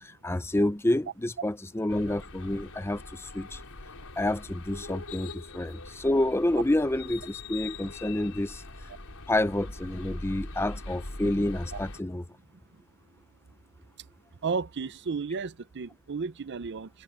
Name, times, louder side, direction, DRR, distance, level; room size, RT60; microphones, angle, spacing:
voice 1, 0.0-3.6 4.2-8.6 9.3-12.2, left 1 dB, 10° left, 0.6 m, -28 dB
sound 1, 1.9-12.0, left 2 dB, 80° left, 4.2 m, -42 dB
voice 2, 14.4-16.9, right 5 dB, 55° right, 0.5 m, -33 dB
head